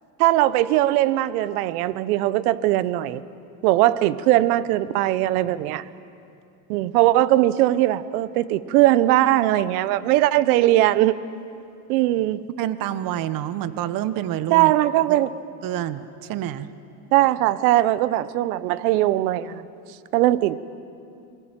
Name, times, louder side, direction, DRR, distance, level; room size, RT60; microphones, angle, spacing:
voice 1, 0.2-3.2 3.6-5.8 6.7-11.2 11.9-12.4 14.5-15.3 17.1-19.6 20.1-20.6, right 15 dB, 70° right, 1.1 m, -20 dB
voice 2, 12.6-14.7 15.1-15.2 15.6-16.7, right 12 dB, 45° right, 1.3 m, -28 dB
25.5 x 22.0 x 9.1 m
supercardioid pair, 120°, 46 cm